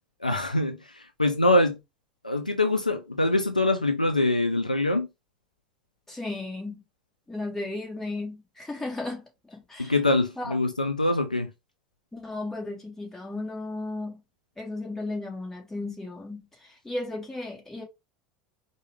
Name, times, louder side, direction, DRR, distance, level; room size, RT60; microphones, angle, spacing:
voice 1, 0.2-1.8 2.2-5.1 9.8-11.5, left 2 dB, 90° left, 0.4 m, -24 dB
voice 2, 6.1-6.8 7.3-9.2 9.5-10.0 10.4-10.5 12.1-14.2 14.6-17.8, left 2 dB, 10° left, 1.6 m, -35 dB
4.6 x 2.3 x 3.1 m
figure-of-eight pair, 75°, 4 cm